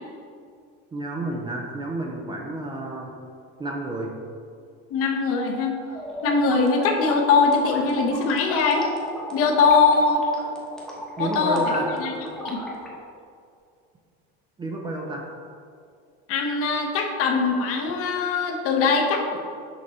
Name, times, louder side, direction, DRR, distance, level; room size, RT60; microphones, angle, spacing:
voice 1, 0.9-3.1 3.6-4.1 11.2-11.9 14.6-15.2, right 2 dB, 15° right, 0 dB, 0.4 m, -30 dB
voice 2, 4.9-5.7 6.2-8.8 9.3-10.2 11.2-12.1 12.4-12.6 16.3-19.4, left 4 dB, 50° left, 2 dB, 0.9 m, -21 dB
sound 1, 5.9-12.9, equal, ahead, 1.0 m, -36 dB
6.6 x 4.7 x 4.2 m, 2.3 s
cardioid pair, 160°, 30 cm